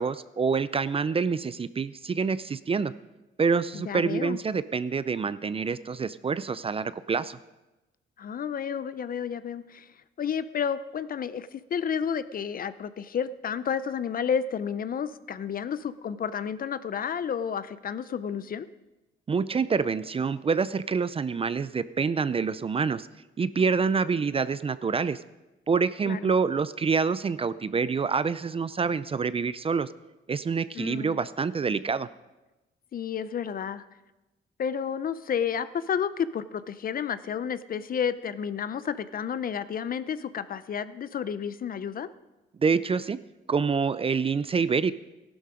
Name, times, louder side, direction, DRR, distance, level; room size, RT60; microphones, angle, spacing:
voice 1, 0.0-2.9 3.4-7.4 19.3-23.1 23.4-25.2 25.7-29.9 30.3-32.1 42.6-43.2 43.5-44.9, right 5 dB, 30° right, 15 dB, 0.5 m, -26 dB
voice 2, 3.9-4.4 8.2-9.9 10.2-18.7 26.1-26.3 30.8-31.2 32.9-33.8 34.6-42.1, left 7 dB, 45° left, 14 dB, 0.6 m, -31 dB
14.5 x 11.5 x 5.0 m, 1.1 s
cardioid pair, 90°, 20 cm